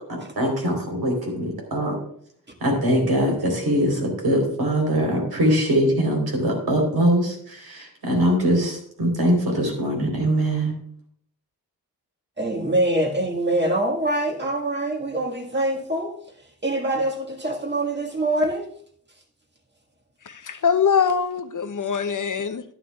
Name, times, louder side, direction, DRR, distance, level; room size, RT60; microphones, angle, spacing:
voice 1, 0.1-2.0 2.6-10.7, equal, 75° right, 3.9 m, -22 dB
voice 2, 12.4-18.7 20.4-20.6, right 1 dB, 30° right, 1.8 m, -25 dB
voice 3, 20.3-22.6, left 6 dB, 55° left, 0.8 m, -23 dB
11.5 x 11.0 x 2.4 m
wide cardioid pair, 75°, 38 cm